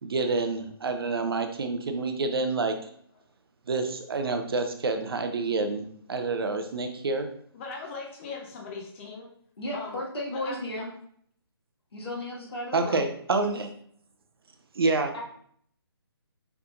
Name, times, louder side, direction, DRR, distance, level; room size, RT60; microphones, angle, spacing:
voice 1, 0.0-2.8 3.7-7.3 12.7-13.7 14.8-15.1, right 3 dB, 65° right, 6 dB, 0.7 m, -28 dB
voice 2, 7.5-9.3 9.7-10.0 10.3-10.9, left 4 dB, 30° left, 1 dB, 0.7 m, -39 dB
voice 3, 9.6-10.9 11.9-13.0 15.1-15.2, left 1 dB, 70° left, -4 dB, 1.8 m, -34 dB
5.7 x 3.4 x 2.5 m, 0.63 s
figure-of-eight pair, 150°, 14 cm